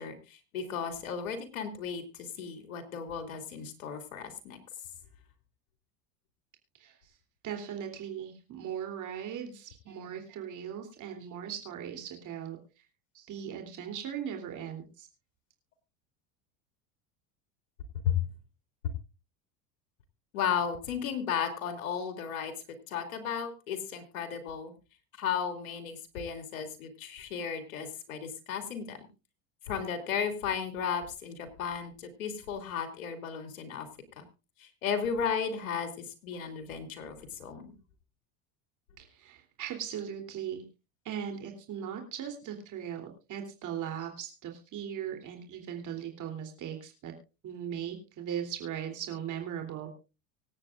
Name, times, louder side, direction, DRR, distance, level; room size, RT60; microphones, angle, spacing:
voice 1, 0.0-4.6 18.0-18.2 20.3-22.5 22.9-24.7 25.2-29.1 29.7-33.9 34.2-34.3 34.6-37.7, left 7 dB, 90° left, 7 dB, 2.8 m, -34 dB
voice 2, 7.4-12.6 13.1-15.1 39.0-40.6 41.0-47.1 47.4-49.9, right 9 dB, 45° right, 4 dB, 3.3 m, -38 dB
24.5 x 8.8 x 2.5 m, 0.30 s
supercardioid pair, 100°, 41 cm